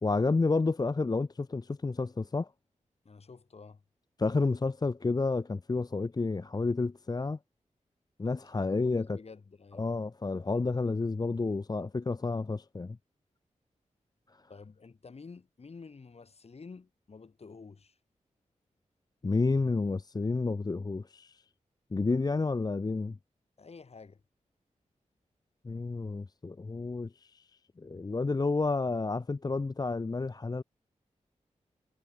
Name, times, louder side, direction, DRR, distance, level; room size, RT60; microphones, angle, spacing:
voice 1, 0.0-2.5 4.2-7.4 8.2-9.2 9.7-13.0 19.2-21.4 21.9-23.2 25.6-27.5 27.8-30.6, left 3 dB, 30° left, 0.7 m, -30 dB
voice 2, 3.0-3.8 8.5-9.9 14.5-18.0 23.6-24.2, left 4 dB, 55° left, 2.8 m, -50 dB
wide cardioid pair, 75°, 13 cm